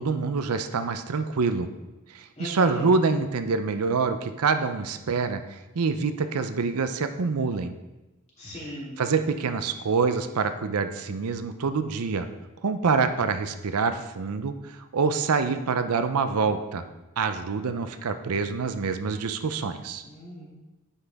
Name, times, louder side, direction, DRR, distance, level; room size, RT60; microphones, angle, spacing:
voice 1, 0.0-1.7 2.1-7.7 9.0-12.3 12.6-16.8 17.2-20.0, right 4 dB, 80° right, 9 dB, 0.5 m, -26 dB
voice 2, 2.4-2.9 8.4-9.0 20.1-20.5, equal, 30° left, -6 dB, 2.7 m, -37 dB
9.7 x 5.7 x 3.5 m, 1.0 s
head